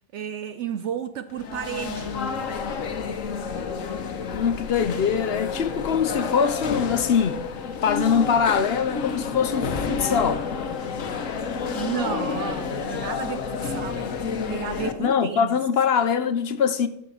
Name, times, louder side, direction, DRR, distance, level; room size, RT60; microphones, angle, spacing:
voice 1, 0.1-2.2 11.7-15.5, right 9 dB, 70° right, 0.8 m, -32 dB
sound 1, 1.3-14.9, left 5 dB, 90° left, 1.4 m, -30 dB
voice 2, 4.3-7.4 7.8-10.4 15.0-16.9, left 7 dB, 60° left, 0.8 m, -23 dB
12.0 x 6.6 x 6.9 m
omnidirectional pair, 1.3 m